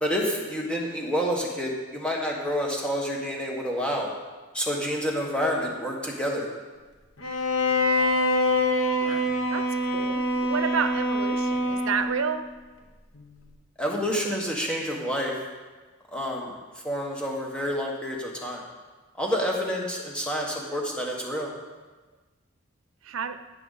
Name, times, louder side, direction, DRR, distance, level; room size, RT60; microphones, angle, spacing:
voice 1, 0.0-4.1 4.5-6.5 13.8-15.3 16.1-16.5 16.8-18.6 19.2-21.5, equal, 5° left, -1 dB, 1.4 m, -28 dB
Bowed string instrument, 7.2-12.3, left 1 dB, 85° left, 1.1 m, -25 dB
voice 2, 8.8-12.5 23.0-23.4, right 6 dB, 85° right, 11 dB, 0.6 m, -31 dB
16.0 x 6.8 x 4.1 m, 1.3 s
head